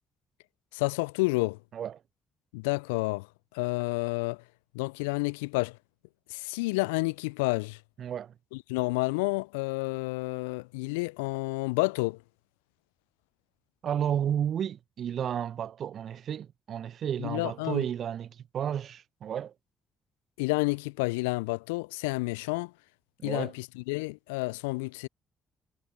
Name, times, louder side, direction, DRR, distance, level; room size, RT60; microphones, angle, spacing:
voice 1, 0.7-1.6 2.5-3.3 3.5-4.4 4.7-5.8 6.3-7.8 8.5-12.2 17.2-17.8 20.4-22.7 23.2-25.1, left 26 dB, 75° left, 0.4 m, -30 dB
voice 2, 8.0-8.3 13.8-19.5 23.2-23.5, right 9 dB, 55° right, 0.8 m, -32 dB
figure-of-eight pair, 45°, 0 cm